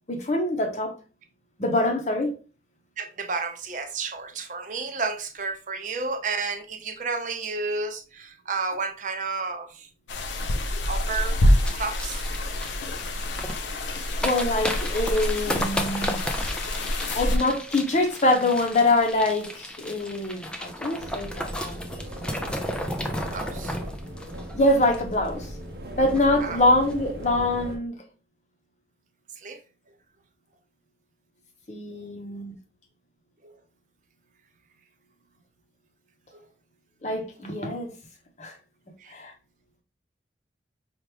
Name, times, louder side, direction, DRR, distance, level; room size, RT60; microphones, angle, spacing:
voice 1, 0.1-0.9 1.6-2.3 14.2-16.2 17.1-21.8 24.5-25.5 26.0-28.0 31.7-32.5 37.0-37.9 38.4-38.5 39.1-39.3, left 2 dB, 40° left, 0.8 m, -24 dB
voice 2, 3.0-9.9 10.9-11.4 11.7-12.2 23.2-23.8 26.4-26.6 29.4-29.6 32.0-32.1 39.0-39.1, right 4 dB, 45° right, 0.5 m, -31 dB
sound 1, 10.1-17.4, left 1 dB, 90° left, 0.6 m, -26 dB
sound 2, 11.7-25.5 25.7-25.8 26.1-26.4 26.8-26.9, equal, 5° left, 0.4 m, -34 dB
sound 3, 21.0-27.8, equal, 65° right, 0.8 m, -38 dB
4.5 x 2.4 x 3.3 m
head